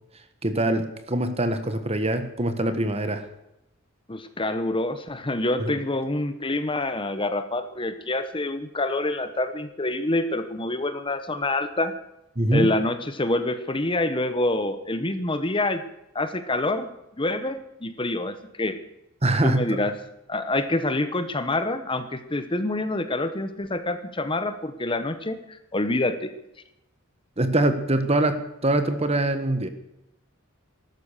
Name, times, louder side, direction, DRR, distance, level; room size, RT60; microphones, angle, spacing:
voice 1, 0.4-3.3 5.6-5.8 12.3-12.7 19.2-19.8 27.4-29.7, right 1 dB, 30° right, 9 dB, 1.5 m, -24 dB
voice 2, 4.1-11.9 12.5-15.8 16.1-16.9 17.2-18.8 19.4-19.9 20.3-26.3, left 2 dB, 25° left, 10 dB, 1.0 m, -26 dB
14.5 x 12.0 x 6.6 m, 0.85 s
head